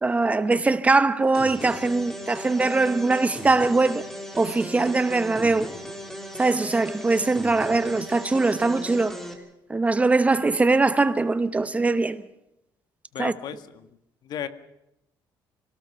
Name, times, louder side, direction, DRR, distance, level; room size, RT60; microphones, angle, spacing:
voice 1, 0.0-4.0 4.4-5.7 6.4-9.2 9.7-12.2 13.2-13.3, right 3 dB, 15° right, 1.0 m, -22 dB
sound 1, 1.3-9.3, equal, 5° left, 3.5 m, -37 dB
voice 2, 13.1-13.9 14.2-14.5, left 9 dB, 60° left, 1.9 m, -34 dB
26.5 x 18.0 x 6.8 m
cardioid pair, 150°, 8 cm